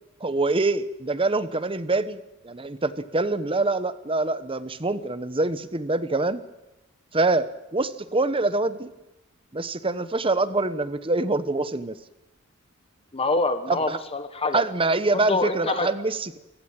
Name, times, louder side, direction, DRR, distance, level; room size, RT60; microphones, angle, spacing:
voice 1, 0.2-6.4 7.1-8.9 9.5-12.0 13.7-14.0 14.5-16.4, right 2 dB, 25° right, 13 dB, 1.1 m, -25 dB
voice 2, 13.1-14.6 15.1-15.9, left 3 dB, 25° left, 9 dB, 1.3 m, -25 dB
28.0 x 15.5 x 8.9 m, 0.96 s
head